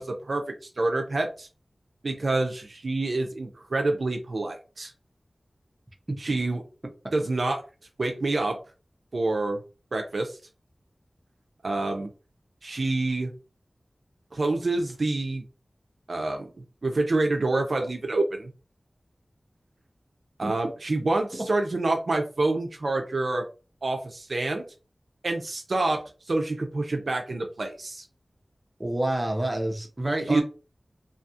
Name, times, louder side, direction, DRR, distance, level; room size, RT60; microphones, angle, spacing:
voice 1, 0.0-1.5 2.0-4.9 6.2-6.6 7.1-7.6 8.0-8.6 9.1-9.6 9.9-10.4 11.6-12.1 12.6-13.3 14.3-15.5 16.1-16.5 16.8-18.5 20.4-23.4 23.8-24.7 25.2-26.0 26.3-28.0 30.3-30.4, right 2 dB, 70° right, 0.4 m, -27 dB
voice 2, 28.8-30.4, right 1 dB, 30° right, 0.6 m, -28 dB
2.7 x 2.3 x 2.6 m
wide cardioid pair, 80°, 0 cm